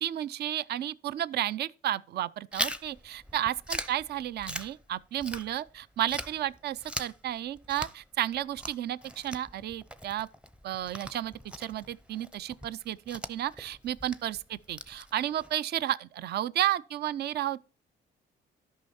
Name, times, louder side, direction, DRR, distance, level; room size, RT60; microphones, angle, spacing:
voice 1, 0.0-10.3 10.6-17.7, right 12 dB, 55° right, 0.4 m, -32 dB
Chewing mastication, 2.5-5.8 6.1-15.5, equal, 5° right, 0.6 m, -40 dB
12.0 x 5.6 x 4.3 m
cardioid pair, 90°, 20 cm